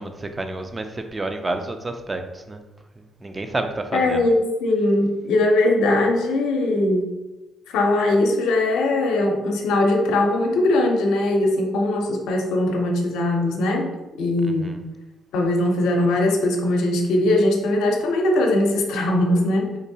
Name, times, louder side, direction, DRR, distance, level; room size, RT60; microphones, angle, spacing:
voice 1, 0.0-2.6 3.0-4.3 14.4-14.8, right 2 dB, 25° right, 6 dB, 0.4 m, -30 dB
voice 2, 3.9-7.1 7.7-13.9 14.2-14.7 15.3-19.7, left 2 dB, 90° left, 1 dB, 0.6 m, -20 dB
4.0 x 2.6 x 2.7 m, 1.1 s
cardioid pair, 90°, 0 cm